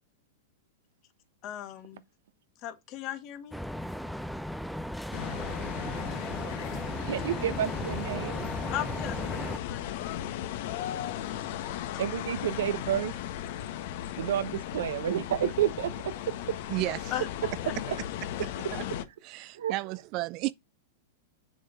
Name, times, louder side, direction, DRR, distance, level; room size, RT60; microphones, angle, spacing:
voice 1, 1.4-2.0 2.6-3.6 8.7-10.1 17.1-17.3 17.6-17.7, left 12 dB, 40° left, 2.0 m, -37 dB
sound 1, 3.5-9.6, equal, ahead, 0.6 m, -36 dB
sound 2, 5.1-19.0, left 11 dB, 60° left, 1.3 m, -36 dB
voice 2, 7.1-8.5 12.0-13.1 14.2-16.6 19.5-19.7, right 10 dB, 75° right, 1.1 m, -30 dB
voice 3, 19.2-20.5, right 18 dB, 45° right, 0.5 m, -32 dB
7.8 x 6.3 x 4.4 m
hypercardioid pair, 135°, 0 cm